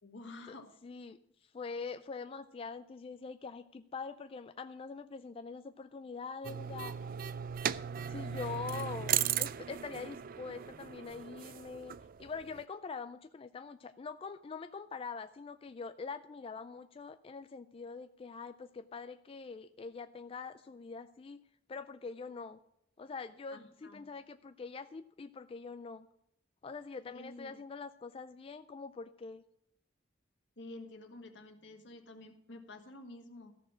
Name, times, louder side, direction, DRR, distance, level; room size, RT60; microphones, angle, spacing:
voice 1, 0.0-0.7 23.5-24.1 27.0-27.6 30.6-33.6, left 2 dB, 75° left, 4 dB, 1.7 m, -50 dB
voice 2, 0.8-6.9 8.1-11.9 12.2-21.4 21.7-22.6 23.0-26.1 26.6-29.4, left 4 dB, 30° left, 10 dB, 0.3 m, -44 dB
sound 1, 6.4-12.6, right 9 dB, 50° right, 0.4 m, -37 dB
14.5 x 6.5 x 6.2 m, 0.76 s
head